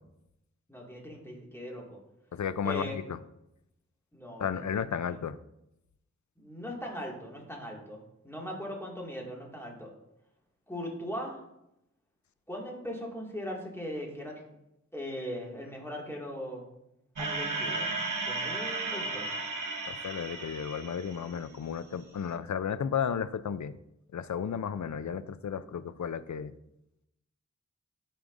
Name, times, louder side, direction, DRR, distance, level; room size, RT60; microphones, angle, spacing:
voice 1, 0.7-2.0 2.6-3.0 4.1-4.7 5.0-5.1 6.4-9.9 10.7-11.4 12.5-14.3 14.9-16.7 17.2-17.9 18.2-19.3, equal, 10° left, -2 dB, 2.1 m, -39 dB
voice 2, 2.3-3.2 4.4-5.4 19.9-23.7 24.1-26.5, left 7 dB, 75° left, 13 dB, 0.5 m, -33 dB
sound 1, 17.2-21.6, right 3 dB, 90° right, 1.0 m, -34 dB
13.0 x 5.1 x 2.6 m, 0.84 s
wide cardioid pair, 45°, 30 cm